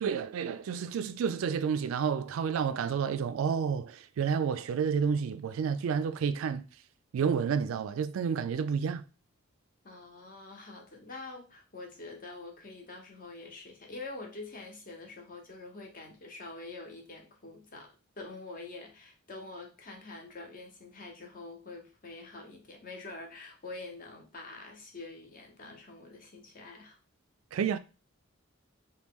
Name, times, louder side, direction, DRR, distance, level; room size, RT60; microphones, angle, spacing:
voice 1, 0.0-6.7 7.1-9.0 27.5-27.8, right 6 dB, 80° right, 0.3 m, -30 dB
voice 2, 9.8-27.0, left 3 dB, 40° left, 0.8 m, -46 dB
3.0 x 2.2 x 3.5 m
head